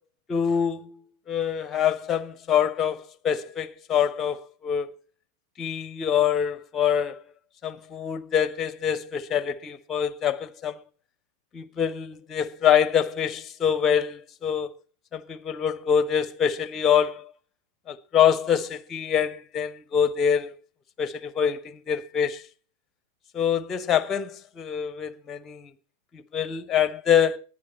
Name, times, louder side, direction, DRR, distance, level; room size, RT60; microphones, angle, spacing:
voice 1, 0.3-0.9 1.3-4.9 5.6-7.2 7.6-10.8 11.5-14.7 15.1-17.3 17.9-20.5 21.0-22.4 23.3-25.7 26.1-27.4, left 8 dB, 25° left, 0.9 m, -25 dB
20.0 x 10.0 x 4.3 m
figure-of-eight pair, 90°, 0 cm